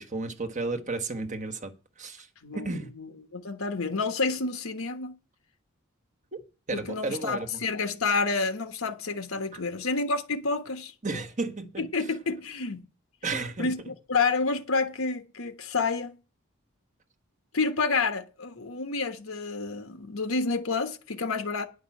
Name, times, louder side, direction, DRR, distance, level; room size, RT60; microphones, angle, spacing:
voice 1, 0.0-1.7 2.0-2.3 2.5-2.9 6.3-6.4 6.7-7.6 9.5-9.6 11.0-11.8 13.2-13.7, right 3 dB, 35° right, 1.3 m, -33 dB
voice 2, 2.4-5.2 6.7-10.9 11.8-12.9 13.6-16.2 17.5-21.7, left 4 dB, 75° left, 1.4 m, -29 dB
10.5 x 5.4 x 8.4 m
head